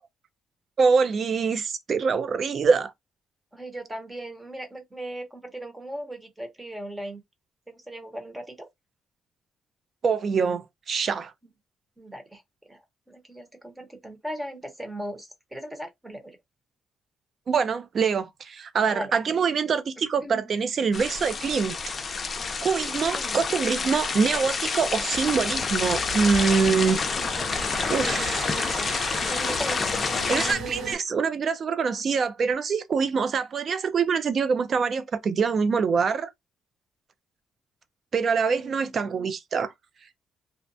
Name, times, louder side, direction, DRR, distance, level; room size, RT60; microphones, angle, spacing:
voice 1, 0.8-2.9 10.0-11.3 17.5-21.7 22.6-27.1 27.9-28.4 30.3-36.3 38.1-39.7, right 5 dB, 50° right, 0.5 m, -24 dB
voice 2, 3.5-7.2 7.7-8.7 12.0-12.4 12.7-12.8 13.1-16.4 18.9-19.1 20.2-20.6 23.1-23.4 27.0-28.9 29.3-30.0 38.5-39.3, right 1 dB, 10° right, 1.0 m, -38 dB
sound 1, 20.9-30.5, left 4 dB, 40° left, 0.5 m, -28 dB
sound 2, 25.1-31.0, right 2 dB, 75° right, 1.3 m, -37 dB
2.5 x 2.2 x 2.6 m
cardioid pair, 90°, 0 cm